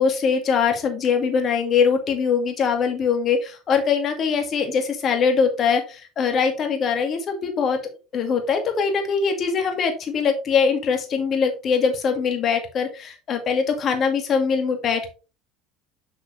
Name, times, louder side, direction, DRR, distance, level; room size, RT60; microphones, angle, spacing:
voice 1, 0.0-7.8 8.1-15.1, left 6 dB, 45° left, 5 dB, 2.1 m, -22 dB
6.4 x 6.0 x 3.2 m, 0.32 s
supercardioid pair, 85°, 0 cm